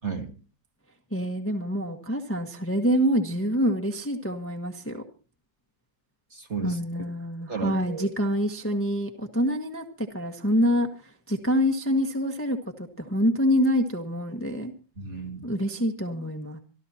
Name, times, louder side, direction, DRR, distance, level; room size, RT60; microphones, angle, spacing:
voice 1, 0.0-0.3 6.3-7.1 7.5-8.1 15.0-15.5, right 5 dB, 35° right, 2 dB, 2.2 m, -34 dB
voice 2, 1.1-5.0 6.6-14.7 15.4-16.6, equal, 10° left, 3 dB, 1.4 m, -26 dB
27.0 x 13.0 x 2.9 m, 0.35 s
omnidirectional pair, 2.0 m